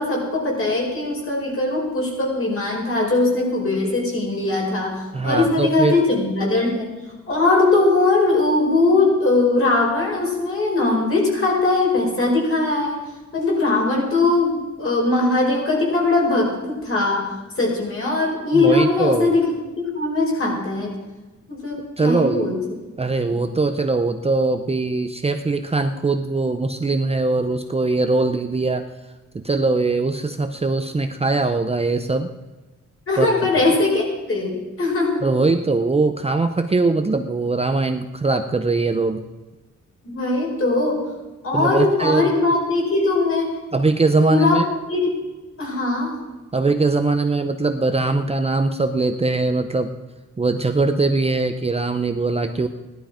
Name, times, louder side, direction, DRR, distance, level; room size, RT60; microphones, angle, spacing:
voice 1, 0.0-6.9 7.3-13.0 13.3-17.3 17.6-20.9 21.5-22.6 23.3-23.4 33.1-35.2 40.0-41.0 41.4-43.5 44.2-44.6 44.9-45.1 45.6-46.1, left 2 dB, 45° left, -2 dB, 5.2 m, -20 dB
voice 2, 5.1-5.9 18.5-19.3 22.0-22.5 23.0-28.8 29.3-32.3 33.2-33.5 35.2-39.2 41.5-42.2 43.7-44.6 46.5-49.9 50.4-52.7, right 3 dB, 20° right, 7 dB, 0.6 m, -21 dB
17.0 x 11.5 x 5.0 m, 1.2 s
wide cardioid pair, 170°, 30 cm